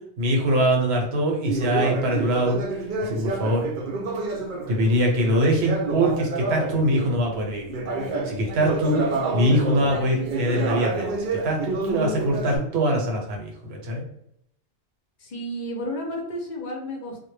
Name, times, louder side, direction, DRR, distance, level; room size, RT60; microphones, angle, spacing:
voice 1, 0.2-2.6 3.1-3.6 4.7-7.7 8.2-9.0 9.3-14.0, equal, 75° right, 0 dB, 0.9 m, -23 dB
Conversation, 1.4-7.2 7.7-12.6, right 3 dB, 60° right, 0.6 m, -28 dB
voice 2, 15.2-17.3, equal, 55° left, 0 dB, 0.6 m, -32 dB
2.1 x 2.0 x 3.1 m, 0.73 s
omnidirectional pair, 1.1 m